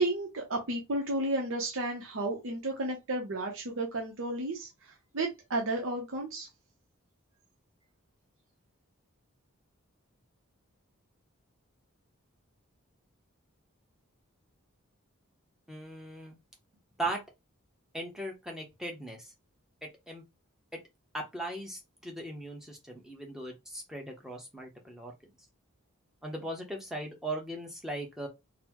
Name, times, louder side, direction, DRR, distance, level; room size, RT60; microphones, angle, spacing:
voice 1, 0.0-4.7 5.1-6.5, right 2 dB, 65° right, 0.7 m, -32 dB
voice 2, 15.7-16.4 17.0-17.2 17.9-19.3 19.8-20.2 20.7-20.8 21.1-25.1 26.2-28.3, right 1 dB, ahead, 0.7 m, -38 dB
3.9 x 2.0 x 2.9 m
head